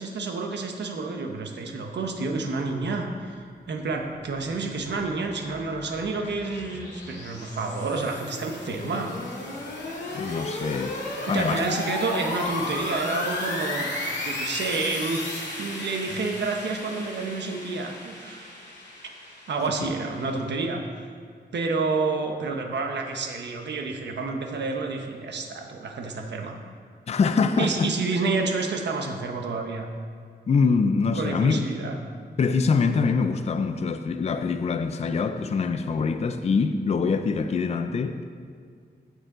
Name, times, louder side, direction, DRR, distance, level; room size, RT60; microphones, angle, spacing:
voice 1, 0.0-9.1 11.2-18.5 19.5-20.8 21.5-26.6 27.6-29.9 31.1-32.0, right 3 dB, 75° right, 3 dB, 1.2 m, -29 dB
sound 1, 4.4-20.4, left 2 dB, 90° left, 2.1 m, -34 dB
voice 2, 10.1-11.0 11.3-11.6 27.1-27.9 30.5-31.6 32.4-38.2, left 5 dB, 35° left, 8 dB, 0.5 m, -24 dB
15.5 x 6.5 x 3.9 m, 2.1 s
wide cardioid pair, 160°, 18 cm